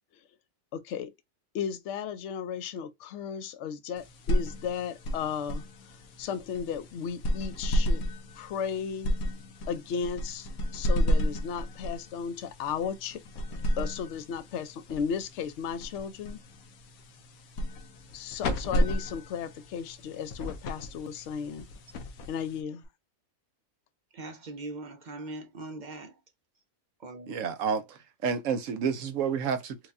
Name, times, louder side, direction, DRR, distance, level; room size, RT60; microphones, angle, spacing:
voice 1, 0.7-1.1 1.5-5.6 6.2-8.0 8.4-9.1 9.7-13.2 13.8-16.4 18.1-21.7 22.3-22.8, left 7 dB, 65° left, 0.8 m, -35 dB
sound 1, 4.0-22.8, equal, 85° left, 1.1 m, -32 dB
voice 2, 24.1-26.2 27.0-27.4, right 2 dB, 50° right, 0.5 m, -41 dB
voice 3, 27.3-29.8, right 6 dB, 70° right, 0.9 m, -30 dB
4.6 x 2.3 x 2.5 m
omnidirectional pair, 1.5 m